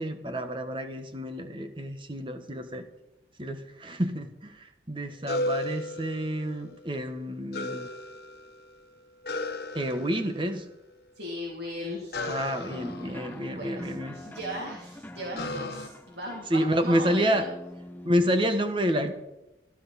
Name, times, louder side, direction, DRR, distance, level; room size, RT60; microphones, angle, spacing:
voice 1, 0.0-2.9 3.4-7.9 9.7-10.7 12.3-14.1 16.5-17.5 18.0-19.1, equal, 30° right, 7 dB, 1.4 m, -29 dB
sound 1, 5.3-6.7 7.5-8.7 9.2-10.5 12.1-14.2 15.3-15.9, left 1 dB, 60° left, 1.4 m, -35 dB
voice 2, 11.1-12.2 13.5-17.5, equal, 75° right, -2 dB, 3.2 m, -37 dB
sound 2, 12.6-18.4, left 1 dB, 10° left, 0.7 m, -44 dB
21.0 x 14.0 x 4.3 m, 0.94 s
head